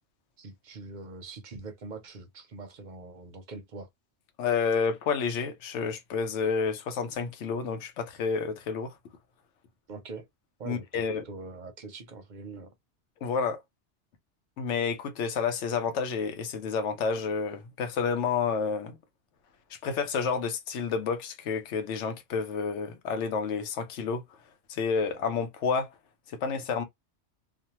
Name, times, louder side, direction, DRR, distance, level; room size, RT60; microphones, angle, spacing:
voice 1, 0.4-3.9 9.9-10.3 10.6-12.7, right 3 dB, 50° right, 0.6 m, -43 dB
voice 2, 4.4-8.9 10.7-11.2 13.2-13.6 14.6-19.0 19.7-24.2 24.7-25.9 26.3-26.8, left 5 dB, 90° left, 0.9 m, -30 dB
2.6 x 2.0 x 2.9 m
omnidirectional pair, 1.2 m